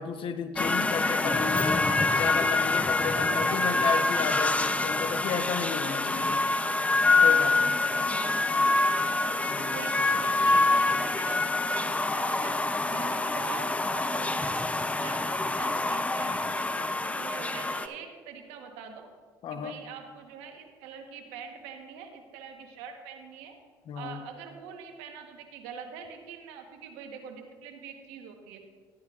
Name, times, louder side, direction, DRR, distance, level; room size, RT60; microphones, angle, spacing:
voice 1, 0.0-6.4 7.2-7.8 9.5-9.8 19.4-19.8 23.9-24.2, left 7 dB, 60° left, 9 dB, 0.9 m, -33 dB
sound 1, 0.6-17.9, left 2 dB, 15° left, 0.5 m, -26 dB
voice 2, 7.9-8.3 9.4-12.5 12.9-14.6 15.0-19.1 19.5-23.5 23.9-28.6, right 7 dB, 85° right, 4 dB, 1.2 m, -44 dB
13.5 x 9.5 x 2.4 m, 1.5 s
supercardioid pair, 70°, 10 cm